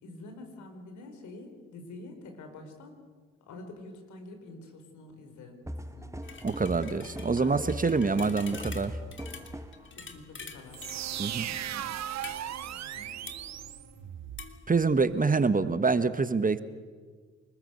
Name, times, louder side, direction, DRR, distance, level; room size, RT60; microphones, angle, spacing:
voice 1, 0.0-3.0 3.5-6.1 7.4-7.6 7.9-8.2 10.0-10.9 11.1-12.0 12.9-13.3, left 2 dB, 70° left, 5 dB, 4.8 m, -47 dB
sound 1, 5.7-9.9, equal, 10° right, 1.5 m, -40 dB
sound 2, 6.2-15.3, left 5 dB, 40° left, 3.1 m, -48 dB
voice 2, 6.4-8.9 11.2-11.5 14.7-16.6, right 4 dB, 25° right, 12 dB, 1.5 m, -26 dB
sound 3, 10.7-14.5, right 11 dB, 60° right, 1.1 m, -37 dB
27.0 x 20.0 x 8.0 m, 1.5 s
hypercardioid pair, 45°, 31 cm